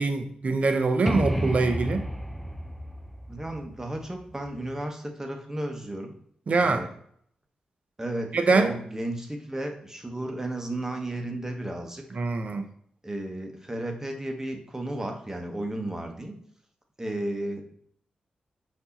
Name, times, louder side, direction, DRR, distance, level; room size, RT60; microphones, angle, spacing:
voice 1, 0.0-2.0 6.5-6.8 8.3-8.8 12.1-12.6, right 3 dB, 55° right, 6 dB, 0.6 m, -24 dB
sound 1, 1.1-4.7, equal, 5° left, 0.4 m, -32 dB
voice 2, 3.3-6.1 6.6-6.9 8.0-12.0 13.0-16.3 17.0-17.6, right 1 dB, 15° right, 3 dB, 0.9 m, -33 dB
4.6 x 2.7 x 4.0 m, 0.64 s
cardioid pair, 70°, 3 cm